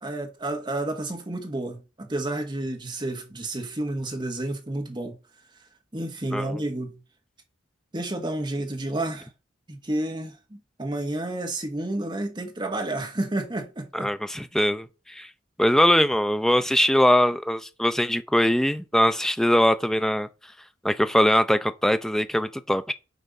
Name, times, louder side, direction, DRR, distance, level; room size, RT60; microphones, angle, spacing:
voice 1, 0.0-5.2 5.9-7.0 7.9-9.3 9.7-14.1, right 1 dB, 25° right, 1.4 m, -30 dB
voice 2, 13.9-15.3 15.6-20.3 20.8-22.9, equal, 5° left, 0.4 m, -22 dB
8.0 x 4.3 x 5.2 m
head